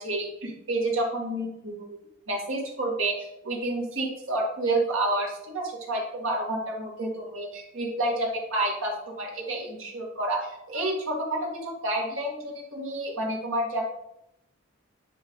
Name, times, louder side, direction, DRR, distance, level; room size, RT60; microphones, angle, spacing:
voice 1, 0.0-2.0 2.3-13.8, right 1 dB, 75° right, -1 dB, 2.1 m, -29 dB
10.0 x 4.6 x 3.9 m, 0.81 s
head